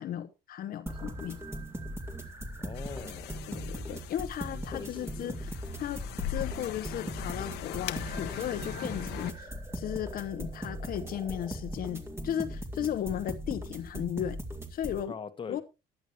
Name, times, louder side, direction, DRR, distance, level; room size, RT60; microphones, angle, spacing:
voice 1, 0.0-1.4 3.5-5.5 5.8-14.4 14.7-15.1 15.5-15.6, left 10 dB, 60° left, 0.9 m, -35 dB
sound 1, 0.9-15.0, right 1 dB, 15° right, 2.4 m, -39 dB
voice 2, 2.6-3.4 4.5-5.4 15.1-15.6, left 6 dB, 30° left, 1.3 m, -42 dB
sound 2, 2.7-9.3, left 13 dB, 90° left, 1.1 m, -40 dB
15.0 x 11.0 x 3.0 m
cardioid pair, 110°, 17 cm